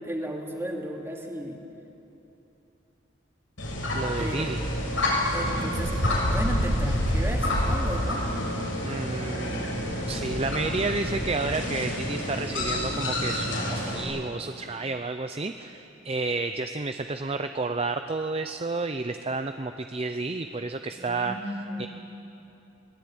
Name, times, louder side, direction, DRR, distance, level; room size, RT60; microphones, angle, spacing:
voice 1, 0.0-1.6 4.2-4.5 5.3-8.2 21.0-21.9, right 1 dB, 15° right, 0 dB, 2.7 m, -34 dB
sound 1, 3.6-14.0, left 1 dB, 90° left, 7.3 m, -28 dB
voice 2, 3.9-4.6 8.8-9.7 10.1-21.9, right 3 dB, 30° right, 8 dB, 0.6 m, -31 dB
24.0 x 19.0 x 8.8 m, 2.9 s
head